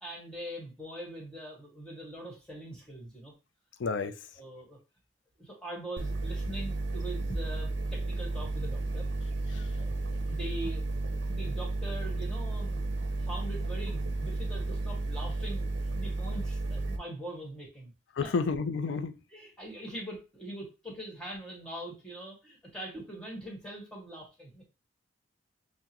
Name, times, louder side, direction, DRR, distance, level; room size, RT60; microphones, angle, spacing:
voice 1, 0.0-3.3 4.4-4.8 5.4-9.1 9.8-10.8 11.3-15.7 16.0-17.9 18.2-18.3 19.3-24.7, right 1 dB, 5° left, 1.4 m, -42 dB
voice 2, 3.8-4.1 9.5-9.7 18.2-19.2, left 4 dB, 85° left, 0.4 m, -30 dB
sound 1, 6.0-17.0, right 2 dB, 80° right, 0.6 m, -33 dB
5.7 x 2.1 x 2.9 m
head